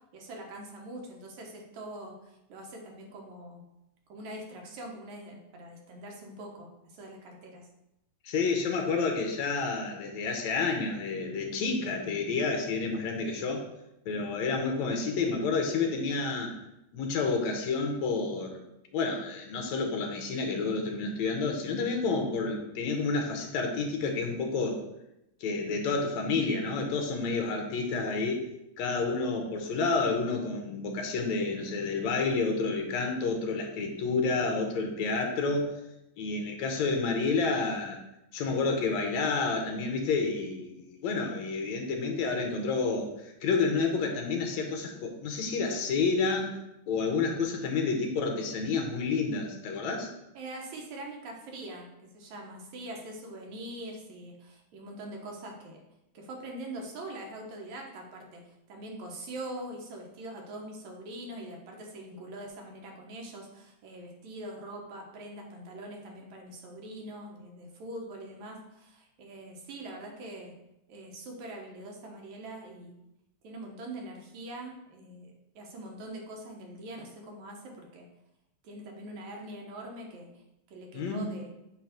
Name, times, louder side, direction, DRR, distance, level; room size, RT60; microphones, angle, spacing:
voice 1, 0.1-3.6 4.1-7.7 50.3-55.8 56.1-58.4 58.7-70.5 70.9-73.0 73.4-78.1 78.6-80.3 80.7-81.5, right 1 dB, 75° right, 1 dB, 2.5 m, -43 dB
voice 2, 8.2-13.6 14.1-16.5 16.9-18.6 18.9-24.8 25.4-28.4 28.8-35.7 36.2-38.0 38.3-46.6 46.9-50.1 80.9-81.4, left 4 dB, 70° left, 3 dB, 2.2 m, -29 dB
8.4 x 3.3 x 5.9 m, 0.86 s
omnidirectional pair, 3.4 m